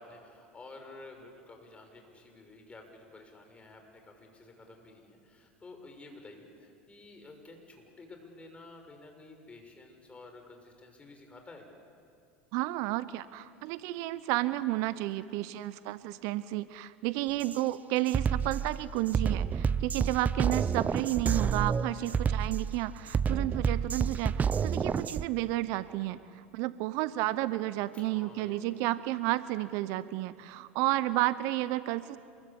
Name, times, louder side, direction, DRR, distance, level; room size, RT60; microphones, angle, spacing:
voice 1, 0.0-11.7 27.9-28.8, left 2 dB, 20° left, 4 dB, 6.1 m, -51 dB
voice 2, 12.5-32.2, right 17 dB, 55° right, 15 dB, 0.8 m, -32 dB
Drum kit, 17.4-17.6 18.1-25.3, right 6 dB, 25° right, 0.7 m, -29 dB
27.5 x 22.5 x 8.6 m, 2.4 s
hypercardioid pair, 85°, 7 cm